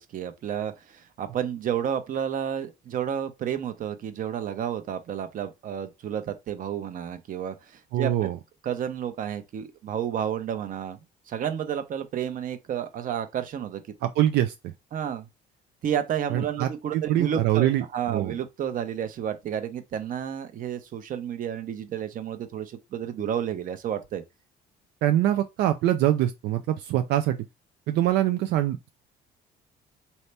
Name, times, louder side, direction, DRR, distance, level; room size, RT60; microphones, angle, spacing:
voice 1, 0.0-8.3 8.6-13.8 14.9-15.3 15.8-24.2, right 9 dB, 55° right, 0.8 m, -31 dB
voice 2, 7.9-8.4 14.0-14.5 16.3-18.3 25.0-27.4 27.9-28.9, right 13 dB, 80° right, 0.5 m, -24 dB
4.3 x 2.7 x 3.3 m
cardioid pair, 110°, 17 cm